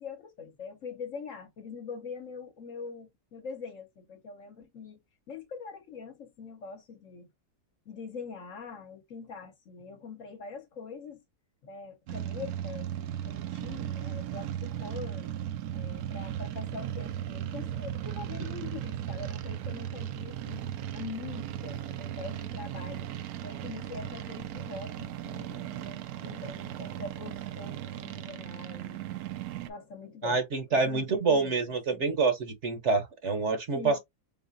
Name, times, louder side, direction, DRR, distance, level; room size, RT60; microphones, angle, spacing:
voice 1, 0.0-5.0 5.3-7.3 7.9-11.2 11.6-15.3 15.7-20.7 20.9-23.1 23.4-29.0 29.7-30.4 30.7-32.0 33.7-34.0, left 5 dB, 55° left, 1.3 m, -43 dB
sound 1, 12.1-29.7, right 11 dB, 75° right, 1.0 m, -37 dB
voice 2, 30.2-33.9, right 4 dB, 50° right, 1.1 m, -27 dB
4.0 x 3.8 x 2.5 m
omnidirectional pair, 1.7 m